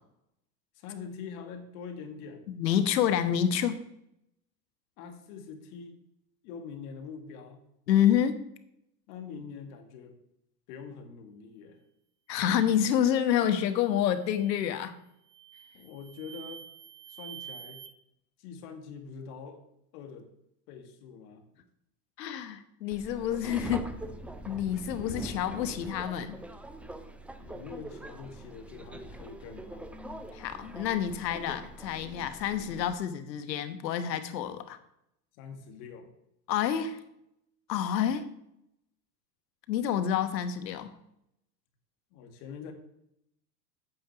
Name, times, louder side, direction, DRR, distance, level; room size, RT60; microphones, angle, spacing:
voice 1, 0.8-2.5 5.0-6.0 6.4-7.6 9.1-10.2 10.7-11.8 15.7-16.7 17.1-17.8 18.4-19.6 19.9-20.3 20.7-21.4 27.4-29.9 35.3-36.1 42.1-42.7, left 6 dB, 60° left, 5 dB, 2.0 m, -44 dB
voice 2, 2.5-3.8 7.9-8.4 12.3-14.9 22.2-23.9 24.5-26.4 30.3-34.8 36.5-37.0 37.7-38.3 39.7-40.9, left 9 dB, 75° left, 10 dB, 1.2 m, -28 dB
sound 1, 13.5-13.8 14.3-14.8 15.3-17.9, right 10 dB, 80° right, 1.1 m, -48 dB
Subway metro underground, 22.9-32.9, right 1 dB, 5° right, 0.4 m, -43 dB
8.8 x 5.5 x 6.8 m, 0.80 s
hypercardioid pair, 90°, 50 cm